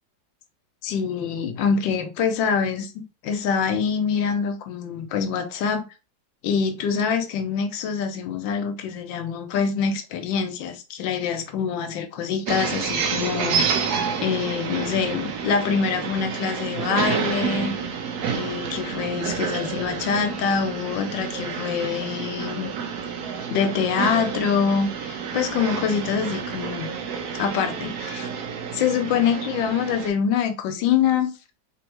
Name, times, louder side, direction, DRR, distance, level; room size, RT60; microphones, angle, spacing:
voice 1, 0.8-2.9 3.2-5.8 6.4-13.9 14.2-17.7 18.3-22.7 23.5-26.9 27.3-28.3 28.7-31.3, left 6 dB, 85° left, 1.3 m, -25 dB
sound 1, 12.5-30.1, right 6 dB, 70° right, 1.0 m, -29 dB
3.3 x 2.6 x 2.8 m
omnidirectional pair, 2.0 m